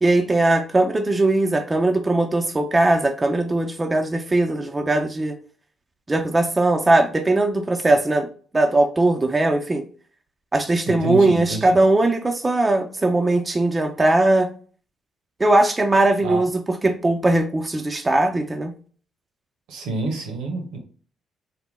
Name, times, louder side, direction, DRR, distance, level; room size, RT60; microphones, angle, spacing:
voice 1, 0.0-5.4 6.1-8.3 8.5-9.8 10.5-14.5 15.4-16.5 16.8-18.7, right 2 dB, 20° right, 4 dB, 0.5 m, -19 dB
voice 2, 10.9-11.8 16.2-16.5 19.7-20.8, right 2 dB, 65° right, 2 dB, 0.8 m, -28 dB
4.0 x 2.1 x 3.4 m, 0.42 s
figure-of-eight pair, 40°, 0 cm